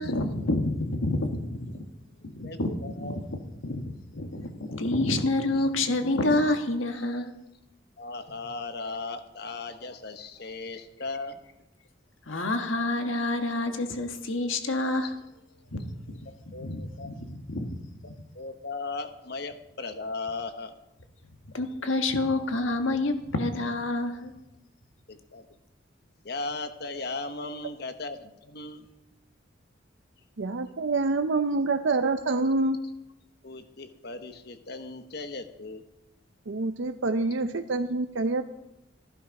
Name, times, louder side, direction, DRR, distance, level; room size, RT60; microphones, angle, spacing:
voice 1, 0.0-1.8 2.2-3.1 3.6-7.3 12.3-15.1 15.7-17.8 21.5-24.3, left 2 dB, 80° left, 6 dB, 1.5 m, -28 dB
voice 2, 2.4-3.2 5.5-5.7 7.0-7.2 8.0-11.4 13.1-13.2 15.0-15.1 16.5-17.1 18.0-20.7 25.1-25.5 26.2-28.9 33.4-35.8, left 3 dB, 55° left, 8 dB, 1.2 m, -37 dB
voice 3, 30.4-32.8 36.5-38.5, right 3 dB, 70° right, 7 dB, 0.6 m, -26 dB
14.5 x 11.5 x 5.3 m, 0.90 s
head